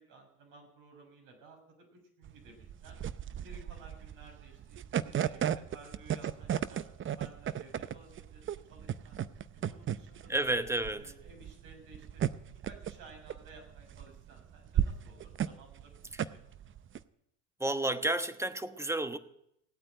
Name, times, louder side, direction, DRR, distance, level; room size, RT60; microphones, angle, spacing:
voice 1, 0.0-3.0 3.4-6.8 7.2-9.2 9.5-10.5 10.9-12.2 12.5-16.7, right 3 dB, 65° right, 2 dB, 6.6 m, -55 dB
sound 1, 2.2-17.0, right 10 dB, 35° right, 0.7 m, -35 dB
voice 2, 10.3-11.0 17.6-19.2, right 1 dB, 5° right, 11 dB, 1.1 m, -31 dB
17.0 x 8.8 x 9.0 m, 0.76 s
hypercardioid pair, 80°, 37 cm